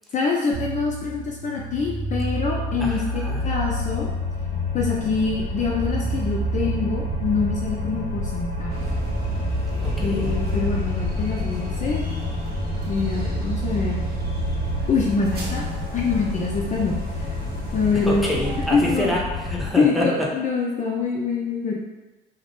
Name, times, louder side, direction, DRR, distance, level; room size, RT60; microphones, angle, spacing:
voice 1, 0.1-4.1 4.7-8.8 10.0-12.0 12.9-14.1 14.9-15.7 15.9-17.4 17.7-18.3 18.7-19.1 19.8-21.8, left 4 dB, 40° left, -2 dB, 0.4 m, -25 dB
sound 1, 0.5-14.8, right 1 dB, 90° right, 0.6 m, -29 dB
sound 2, 2.0-19.7, left 3 dB, 80° left, 0.7 m, -31 dB
voice 2, 2.8-3.4 9.8-10.3 18.0-20.0, left 1 dB, ahead, -4 dB, 0.7 m, -27 dB
sound 3, 8.7-18.7, right 2 dB, 50° right, 0.7 m, -35 dB
2.4 x 2.0 x 3.0 m, 1.1 s
supercardioid pair, 65°, 20 cm